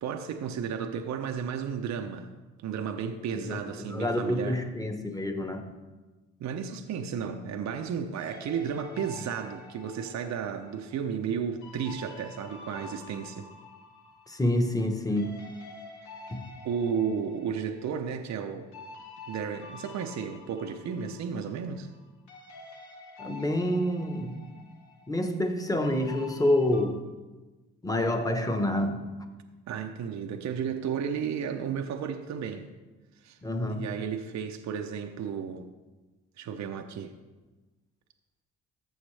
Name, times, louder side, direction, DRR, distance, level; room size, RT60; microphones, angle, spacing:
voice 1, 0.0-2.3 2.6-4.6 6.4-13.5 16.6-18.7 19.3-21.9 29.7-32.7 33.2-33.4 33.7-35.7 36.4-37.1, right 7 dB, 65° right, 6 dB, 0.7 m, -33 dB
voice 2, 3.3-5.7 14.3-15.4 16.3-16.5 23.2-24.4 25.1-27.0 27.8-29.1 33.4-33.9, left 1 dB, 10° left, 5 dB, 1.1 m, -28 dB
sound 1, 8.1-14.9 15.2-22.0 22.3-26.8, left 3 dB, 75° left, 1.4 m, -48 dB
14.5 x 6.5 x 3.3 m, 1.2 s
cardioid pair, 90°, 30 cm